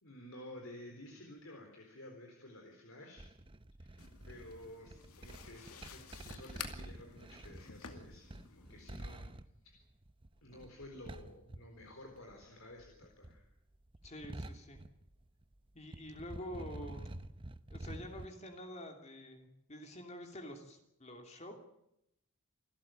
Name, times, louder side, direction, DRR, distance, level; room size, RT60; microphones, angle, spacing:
voice 1, 0.0-3.2 3.8-9.3 9.6-9.8 10.4-13.5, left 1 dB, 65° left, 2 dB, 4.1 m, -53 dB
sound 1, 3.2-12.5 12.7-15.6 15.8-18.3, right 1 dB, 25° right, 0.8 m, -48 dB
sound 2, 4.0-9.1, left 6 dB, 85° left, 2.4 m, -51 dB
voice 2, 14.0-14.8 15.7-17.2 17.7-21.5, equal, 30° left, 3 dB, 2.9 m, -48 dB
28.0 x 13.0 x 9.2 m, 0.80 s
head